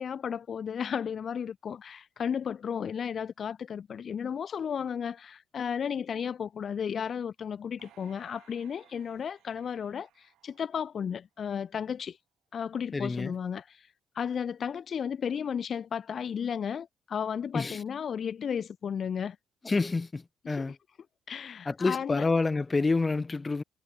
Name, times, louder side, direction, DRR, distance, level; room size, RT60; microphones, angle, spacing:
voice 1, 0.0-12.2 12.5-13.9 14.1-19.4 20.5-20.7 21.3-22.3, left 7 dB, 55° left, 0.6 m, -34 dB
sound 1, 7.8-11.2 11.7-11.8, right 13 dB, 85° right, 5.7 m, -62 dB
voice 2, 12.9-13.4 17.5-17.8 19.6-20.8 21.7-23.6, left 3 dB, 25° left, 0.9 m, -28 dB
cardioid pair, 90°, 0 cm